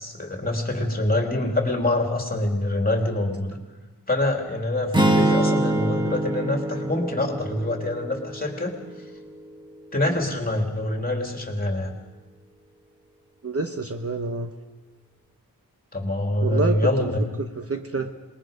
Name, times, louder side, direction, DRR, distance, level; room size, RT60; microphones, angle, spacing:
voice 1, 0.0-3.6 4.1-8.7 9.9-11.9 15.9-17.2, left 1 dB, 20° left, 2 dB, 3.1 m, -25 dB
sound 1, 4.9-9.1, right 1 dB, 10° right, 1.6 m, -24 dB
voice 2, 13.4-14.5 16.4-17.1 17.4-18.1, right 3 dB, 35° right, 5 dB, 1.1 m, -28 dB
27.0 x 20.5 x 5.2 m, 1.3 s
wide cardioid pair, 120°, 40 cm